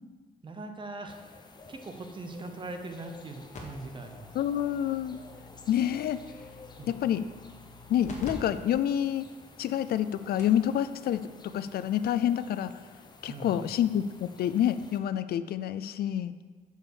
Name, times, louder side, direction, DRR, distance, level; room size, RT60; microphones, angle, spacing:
voice 1, 0.4-1.2 1.7-4.3 6.8-6.9 13.3-13.7, right 2 dB, 30° right, 5 dB, 0.9 m, -41 dB
sound 1, 1.1-15.0, left 3 dB, 25° left, 0.7 m, -52 dB
sound 2, 3.5-8.3 8.7-8.8 9.4-9.5 10.1-10.2 10.4-10.6 11.9-12.0, left 3 dB, 50° left, 1.5 m, -47 dB
voice 2, 4.3-5.2 5.7-6.2 6.9-7.3 7.9-9.3 9.6-12.8 13.2-16.3, left 10 dB, 75° left, 13 dB, 0.4 m, -28 dB
7.0 x 5.5 x 6.3 m, 1.4 s
cardioid pair, 125°, 16 cm